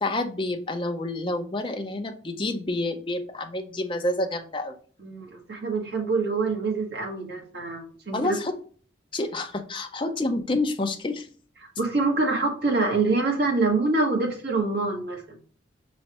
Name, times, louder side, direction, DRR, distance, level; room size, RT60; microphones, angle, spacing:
voice 1, 0.0-4.8 8.1-8.5 9.1-11.3, left 2 dB, 25° left, 5 dB, 0.6 m, -28 dB
voice 2, 5.0-8.4 11.8-15.4, right 3 dB, 60° right, 1 dB, 1.2 m, -25 dB
5.5 x 3.1 x 2.9 m, 0.43 s
head